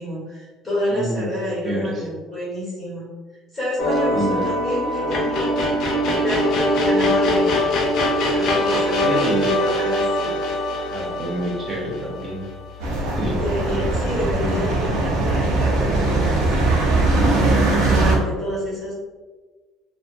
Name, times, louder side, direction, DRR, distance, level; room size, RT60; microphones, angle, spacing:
voice 1, 0.0-3.1 3.5-5.7 6.2-7.6 8.3-9.2 9.6-10.4 13.3-16.7 17.0-18.9, left 1 dB, ahead, -9 dB, 1.5 m, -29 dB
voice 2, 0.9-1.3 1.6-2.1 4.1-4.4 9.0-9.6 10.9-12.4 13.2-13.4, right 1 dB, 20° right, -1 dB, 0.5 m, -27 dB
sound 1, 3.8-13.0, left 1 dB, 40° left, 0.4 m, -22 dB
sound 2, 12.8-18.2, right 2 dB, 90° right, 0.6 m, -20 dB
2.8 x 2.1 x 2.5 m, 1.3 s
cardioid pair, 180°, 0 cm